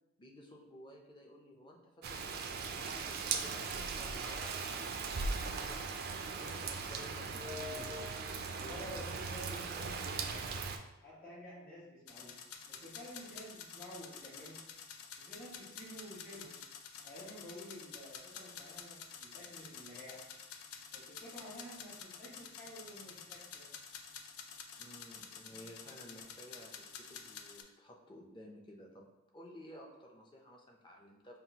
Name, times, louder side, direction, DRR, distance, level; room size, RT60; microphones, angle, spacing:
voice 1, 0.2-4.6 5.0-5.9 6.3-7.9 24.8-31.4, equal, 20° left, 1 dB, 0.5 m, -55 dB
Rain, 2.0-10.8, right 5 dB, 45° right, 0.3 m, -39 dB
voice 2, 7.3-10.5 11.0-12.3 12.7-14.6 15.2-16.6 17.0-20.2 20.9-23.7 25.5-25.6, left 1 dB, 35° left, -12 dB, 1.4 m, -50 dB
sound 1, 12.1-27.6, left 6 dB, 80° left, 0.4 m, -50 dB
5.6 x 2.4 x 2.8 m, 0.98 s
head